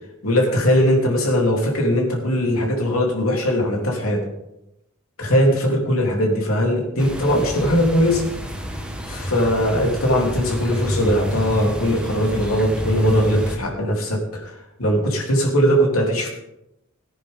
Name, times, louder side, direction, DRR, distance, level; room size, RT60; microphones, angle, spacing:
voice 1, 0.2-4.2 5.2-8.3 9.1-16.3, equal, 90° left, 0 dB, 3.3 m, -20 dB
sound 1, 7.0-13.6, equal, 5° right, 1.5 m, -29 dB
18.0 x 9.8 x 3.7 m, 0.85 s
head